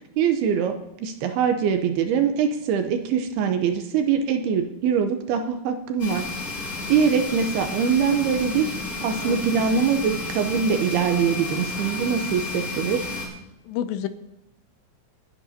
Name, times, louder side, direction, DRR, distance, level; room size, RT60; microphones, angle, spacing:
voice 1, 0.2-6.3 6.9-8.7 9.0-13.1, right 7 dB, 75° right, 7 dB, 2.5 m, -23 dB
sound 1, 6.0-13.3, left 3 dB, 20° left, 5.2 m, -32 dB
voice 2, 9.2-9.7 13.7-14.1, left 10 dB, 85° left, 11 dB, 2.7 m, -30 dB
28.0 x 10.0 x 2.8 m, 0.91 s
omnidirectional pair, 5.1 m